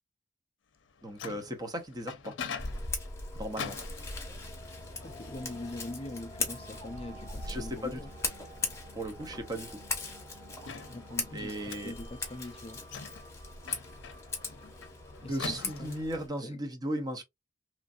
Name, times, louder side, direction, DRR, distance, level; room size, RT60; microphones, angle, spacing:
Microwave oven, 0.8-16.3, left 6 dB, 80° left, 0.6 m, -46 dB
voice 1, 1.0-2.3 3.4-3.8 7.5-8.0 8.9-9.8 11.3-11.9 15.3-17.2, right 1 dB, 20° right, 0.7 m, -36 dB
Scissors, 2.6-16.3, left 3 dB, 15° left, 0.8 m, -39 dB
sound 1, 4.9-15.8, right 3 dB, 90° right, 1.7 m, -56 dB
voice 2, 5.0-8.1 10.9-12.8 15.2-16.0 16.4-16.6, left 2 dB, 30° left, 0.4 m, -43 dB
3.1 x 2.6 x 2.4 m
head